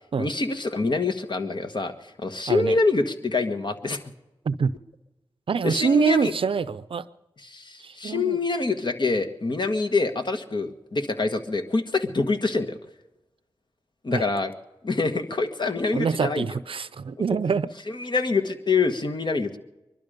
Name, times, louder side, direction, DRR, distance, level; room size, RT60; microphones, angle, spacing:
voice 1, 0.2-4.0 5.6-6.3 7.4-12.8 14.0-14.5 14.8-16.6 17.9-19.6, left 3 dB, 50° left, 1.5 m, -25 dB
voice 2, 5.5-7.0 7.8-8.4 14.1-14.2 15.9-17.7, right 5 dB, 65° right, 0.6 m, -25 dB
22.5 x 12.0 x 5.2 m
cardioid pair, 45°, 10 cm